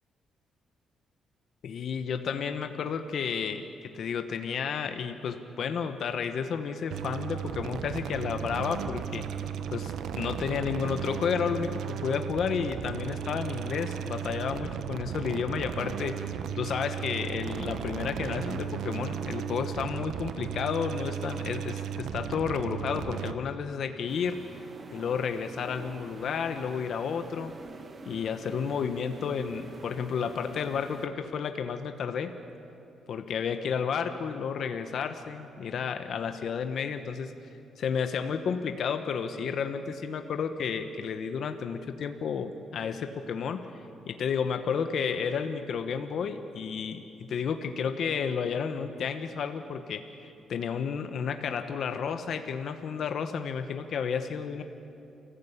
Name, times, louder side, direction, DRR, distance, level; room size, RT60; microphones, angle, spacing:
voice 1, 1.6-9.3 9.7-16.3 16.6-24.4 24.9-27.5 28.1-32.3 33.1-37.3 37.8-43.7 44.1-47.0 47.3-54.6, left 6 dB, 55° left, 7 dB, 1.2 m, -31 dB
sound 1, 6.9-23.3, right 9 dB, 75° right, 0.9 m, -35 dB
sound 2, 24.1-31.1, right 3 dB, 30° right, 1.3 m, -46 dB
29.0 x 15.0 x 8.3 m, 2.7 s
cardioid pair, 150°, 0 cm